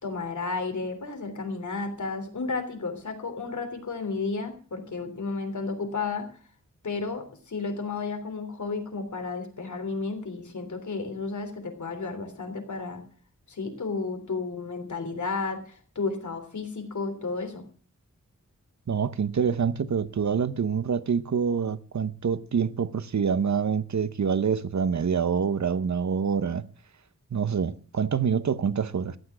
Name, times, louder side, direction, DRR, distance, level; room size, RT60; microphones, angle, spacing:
voice 1, 0.0-6.3 6.8-13.0 13.5-17.7, left 4 dB, 80° left, 3.4 m, -32 dB
voice 2, 18.9-26.7 27.3-29.2, right 6 dB, 70° right, 0.9 m, -26 dB
14.5 x 10.0 x 6.0 m
wide cardioid pair, 95°, 29 cm